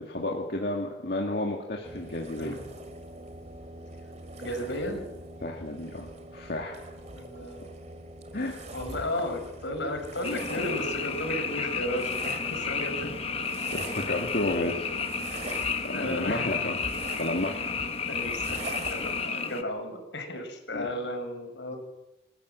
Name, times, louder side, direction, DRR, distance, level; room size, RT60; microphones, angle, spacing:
voice 1, 0.0-2.6 5.4-6.8 8.3-8.6 13.7-14.9 15.8-16.8 17.2-17.7 20.7-20.9, left 1 dB, 55° left, 0 dB, 2.2 m, -31 dB
sound 1, 1.8-19.3, right 2 dB, 40° right, 2.6 m, -43 dB
voice 2, 4.4-5.0 7.1-7.9 8.7-13.2 15.4-15.6 15.9-16.5 18.1-21.8, left 1 dB, 75° left, 4 dB, 5.6 m, -34 dB
Frog, 10.2-19.6, left 5 dB, 30° left, 1.2 m, -32 dB
27.5 x 14.0 x 7.7 m, 0.98 s
head